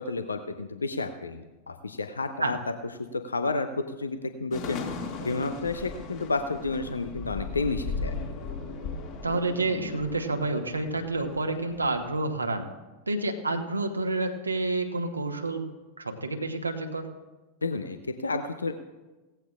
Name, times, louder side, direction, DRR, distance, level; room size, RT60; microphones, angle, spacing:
voice 1, 0.0-2.6 3.1-4.8 5.2-8.1 17.6-18.7, left 3 dB, 75° left, 9 dB, 0.6 m, -31 dB
sound 1, 4.5-12.1, left 4 dB, 40° left, 2.1 m, -37 dB
voice 2, 9.2-12.7 13.1-15.6 16.0-17.1, right 2 dB, 80° right, 5 dB, 1.1 m, -29 dB
17.5 x 15.0 x 2.4 m, 1.1 s
figure-of-eight pair, 90°, 0 cm